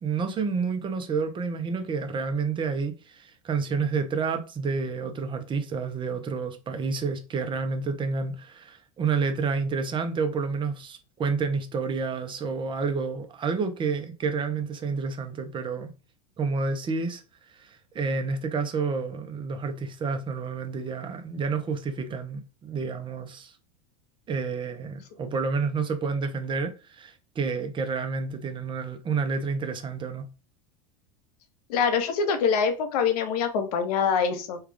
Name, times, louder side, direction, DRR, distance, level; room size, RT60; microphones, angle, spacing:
voice 1, 0.0-15.9 16.4-17.2 17.5-23.5 24.3-30.3, right 5 dB, 25° right, 0.6 m, -29 dB
voice 2, 31.7-34.6, left 6 dB, 70° left, 0.8 m, -24 dB
3.3 x 2.4 x 3.3 m
hypercardioid pair, 100°, 20 cm